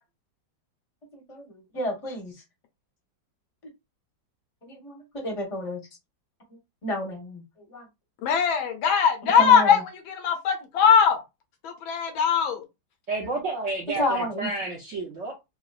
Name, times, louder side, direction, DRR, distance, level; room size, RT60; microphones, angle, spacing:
voice 1, 1.1-2.3 4.7-5.8 6.8-7.8 9.4-9.8 14.0-14.5, left 1 dB, 30° left, 0.6 m, -31 dB
voice 2, 8.2-11.2 11.6-12.6, left 7 dB, 90° left, 1.5 m, -21 dB
voice 3, 13.1-15.3, right 3 dB, 65° right, 0.7 m, -30 dB
3.8 x 2.1 x 2.4 m
omnidirectional pair, 2.1 m